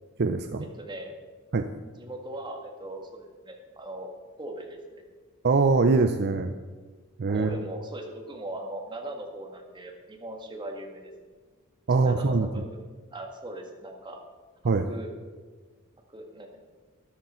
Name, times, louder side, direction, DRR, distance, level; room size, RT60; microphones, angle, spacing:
voice 1, 0.2-0.7 1.5-1.7 5.4-6.5 7.2-7.6 11.9-12.5 14.6-14.9, right 4 dB, 50° right, 7 dB, 0.5 m, -23 dB
voice 2, 0.8-1.1 2.0-4.1 4.4-5.0 7.3-11.1 12.0-12.8 13.1-14.2 14.6-15.1 16.1-16.6, right 1 dB, 20° right, 1 dB, 1.7 m, -39 dB
13.5 x 11.0 x 4.4 m, 1.4 s
head